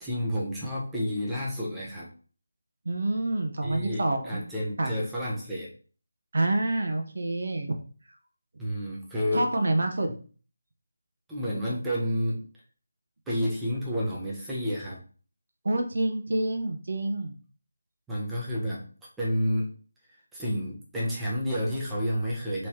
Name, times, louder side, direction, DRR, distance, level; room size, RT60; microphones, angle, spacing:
voice 1, 0.0-2.1 3.6-5.7 8.6-9.5 11.3-12.5 13.3-15.0 18.1-18.9 19.2-19.7 20.3-22.7, equal, 5° right, -7 dB, 0.8 m, -30 dB
voice 2, 2.9-4.4 4.8-4.9 6.3-7.7 9.3-10.1 15.6-17.3, right 2 dB, 55° right, 4 dB, 0.8 m, -27 dB
4.6 x 3.1 x 2.8 m, 0.40 s
figure-of-eight pair, 160°, 0 cm